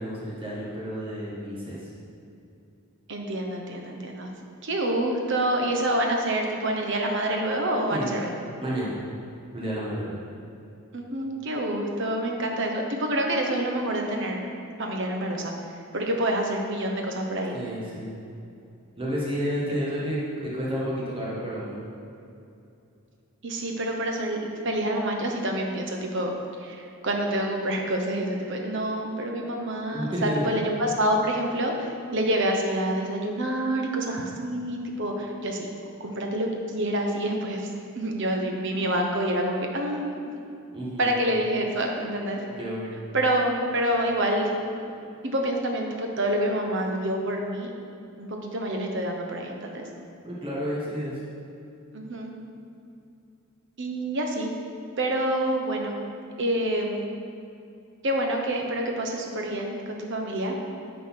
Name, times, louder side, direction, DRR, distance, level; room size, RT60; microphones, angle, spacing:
voice 1, 0.0-1.9 7.9-8.1 8.6-9.0 9.5-10.2 17.5-18.1 19.0-21.8 29.9-30.6 40.7-41.1 42.5-42.9 50.2-51.2, equal, 25° right, -7 dB, 1.5 m, -31 dB
voice 2, 3.1-4.3 4.6-8.3 10.9-14.4 14.8-15.5 15.9-17.5 23.4-26.3 26.6-35.7 36.0-37.7 38.0-40.1 41.0-42.4 43.1-44.5 45.2-47.7 48.2-49.9 51.9-52.3 53.8-54.5 55.0-56.0 56.4-57.1 58.0-60.6, right 1 dB, 55° right, 1 dB, 1.0 m, -27 dB
9.6 x 4.1 x 5.8 m, 2.6 s
head